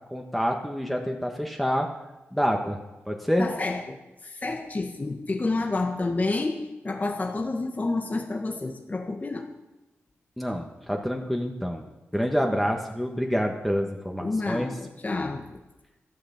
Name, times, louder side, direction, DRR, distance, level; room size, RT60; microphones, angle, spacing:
voice 1, 0.1-1.9 2.3-2.8 3.1-3.5 10.4-11.8 12.1-14.7, equal, ahead, 1 dB, 1.7 m, -27 dB
voice 2, 3.4-9.5 14.2-15.6, left 3 dB, 35° left, 2 dB, 1.7 m, -29 dB
14.0 x 11.5 x 7.4 m, 1.1 s
cardioid pair, 70°, 5 cm